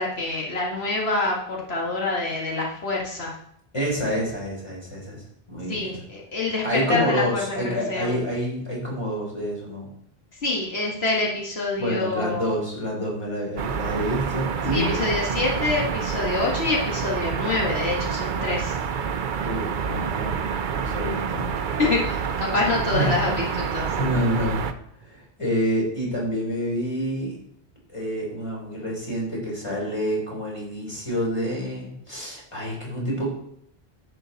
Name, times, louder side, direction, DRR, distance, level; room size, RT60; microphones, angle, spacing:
voice 1, 0.0-3.3 5.7-8.2 10.4-12.6 14.7-18.8 21.8-24.1, left 3 dB, 85° left, -2 dB, 1.9 m, -26 dB
voice 2, 3.7-6.0 6.6-9.9 11.8-15.0 19.4-20.4 20.7-21.6 22.9-23.2 24.0-24.7 25.0-27.4 27.9-33.3, equal, 30° left, -3 dB, 3.9 m, -28 dB
sound 1, 13.6-24.7, right 7 dB, 55° right, 0.7 m, -28 dB
10.5 x 7.8 x 4.0 m, 0.70 s
omnidirectional pair, 1.0 m